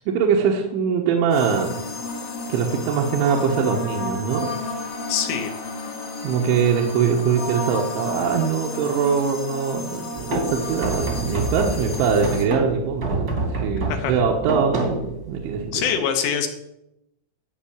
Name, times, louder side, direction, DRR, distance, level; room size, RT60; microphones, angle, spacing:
voice 1, 0.1-1.8 2.5-4.5 6.2-15.9, right 6 dB, 75° right, -1 dB, 3.4 m, -22 dB
sound 1, 1.3-12.4, left 2 dB, 55° left, 1.7 m, -32 dB
voice 2, 5.1-5.5 13.9-14.2 15.7-16.5, left 8 dB, 75° left, 4 dB, 3.6 m, -24 dB
sound 2, 10.1-15.7, right 2 dB, 35° right, 1.5 m, -28 dB
13.5 x 5.6 x 8.7 m, 0.84 s
omnidirectional pair, 5.8 m